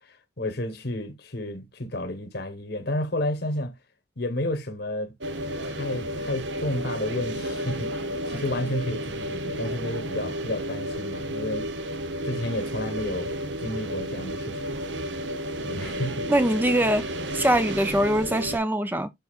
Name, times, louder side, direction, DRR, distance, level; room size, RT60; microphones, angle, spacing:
voice 1, 0.0-3.8 4.2-5.1 5.6-11.7 12.2-13.3 13.6-14.8 15.6-16.3, left 1 dB, 60° left, 1.2 m, -31 dB
sound 1, 5.2-18.6, equal, 75° right, 0.9 m, -32 dB
voice 2, 16.3-19.1, right 1 dB, 10° right, 0.5 m, -23 dB
10.5 x 4.1 x 2.4 m
head